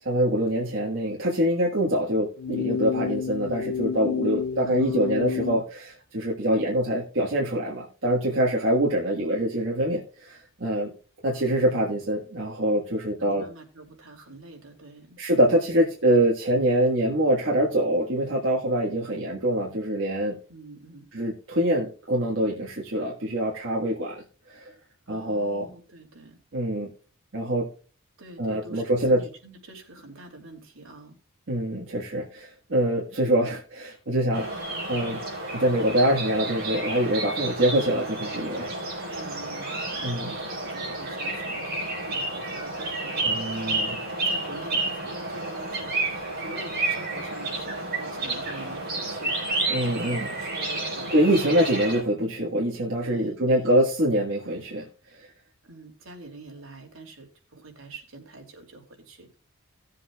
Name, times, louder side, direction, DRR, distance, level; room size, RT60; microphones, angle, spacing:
voice 1, 0.0-10.9 11.2-13.4 15.2-20.4 21.1-24.2 24.5-24.7 25.1-25.8 26.5-26.9 27.3-27.7 28.4-29.3 31.5-34.6 34.9-35.2 35.5-39.1 40.0-40.3 43.2-44.0 49.7-50.3 51.1-55.3, right 1 dB, 60° right, -2 dB, 1.6 m, -25 dB
sound 1, 2.4-5.6, left 6 dB, 75° left, 0.4 m, -29 dB
voice 2, 4.6-5.4 11.2-11.8 13.2-15.2 20.5-21.1 25.1-26.4 28.2-31.2 39.0-43.6 44.0-51.3 53.0-53.7 55.6-59.4, right 2 dB, 75° right, 2 dB, 2.8 m, -46 dB
sound 2, 34.3-52.0, right 2 dB, 45° right, 4.8 m, -31 dB
18.0 x 7.5 x 2.3 m, 0.38 s
head